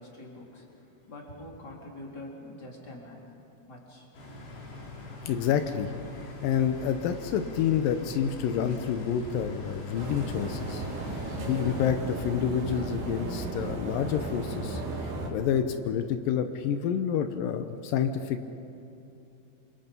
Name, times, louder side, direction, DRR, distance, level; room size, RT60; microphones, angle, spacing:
voice 1, 0.0-3.4 3.7-4.1, left 1 dB, 25° left, -2 dB, 3.8 m, -45 dB
sound 1, 4.1-11.9, left 2 dB, 65° left, 6.0 m, -42 dB
voice 2, 5.3-5.9 6.4-10.8 11.1-14.8 15.3-18.5, left 8 dB, 85° left, 8 dB, 1.9 m, -28 dB
sound 2, 9.9-15.3, right 2 dB, 65° right, 4.5 m, -35 dB
28.0 x 27.5 x 5.4 m, 2.7 s
omnidirectional pair, 5.1 m